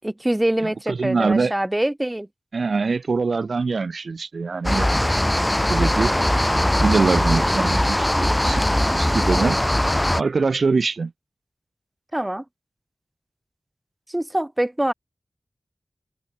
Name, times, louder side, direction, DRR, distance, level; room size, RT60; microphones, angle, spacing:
voice 1, 0.0-2.3 7.2-7.6 12.1-12.4 14.1-14.9, right 1 dB, 15° right, 6.6 m, -24 dB
voice 2, 0.6-1.5 2.5-5.1 5.4-6.1 6.8-9.6 10.2-11.1, right 4 dB, 75° right, 2.8 m, -24 dB
sound 1, 4.6-10.2, left 1 dB, 15° left, 2.4 m, -20 dB
wide cardioid pair, 90°, 0 cm